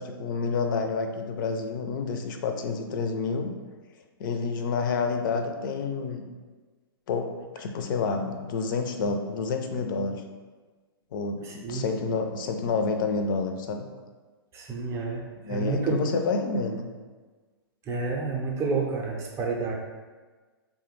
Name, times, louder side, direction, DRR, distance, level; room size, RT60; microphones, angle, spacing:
voice 1, 0.0-3.5 4.2-6.2 7.1-10.2 11.1-13.9 15.4-16.9, left 4 dB, 55° left, 5 dB, 0.4 m, -29 dB
voice 2, 11.4-12.1 14.5-16.0 17.9-19.7, right 4 dB, 20° right, -1 dB, 0.5 m, -30 dB
3.3 x 2.1 x 3.1 m, 1.4 s
hypercardioid pair, 115°, 13 cm